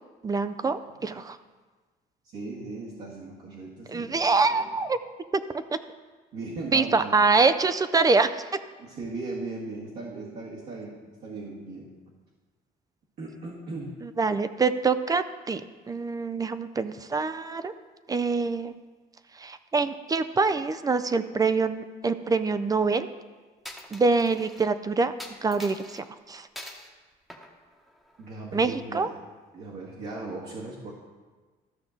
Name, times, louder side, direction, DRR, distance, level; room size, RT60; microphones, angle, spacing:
voice 1, 0.2-1.4 3.9-5.0 6.7-8.6 14.0-15.6 15.9-17.7 18.1-18.8 19.4-23.1 23.9-25.1 25.4-26.5 28.5-29.1, right 4 dB, 20° right, 11 dB, 0.4 m, -25 dB
voice 2, 2.3-4.2 4.5-4.7 6.3-7.2 8.8-11.9 13.2-14.0 28.2-29.2 29.5-30.9, right 3 dB, 70° right, -6 dB, 1.9 m, -38 dB
Coin (dropping), 23.6-24.7 25.2-26.0 26.6-26.9 27.3-28.4, left 1 dB, ahead, 1.0 m, -44 dB
13.5 x 5.9 x 3.8 m, 1.4 s
cardioid pair, 110°, 17 cm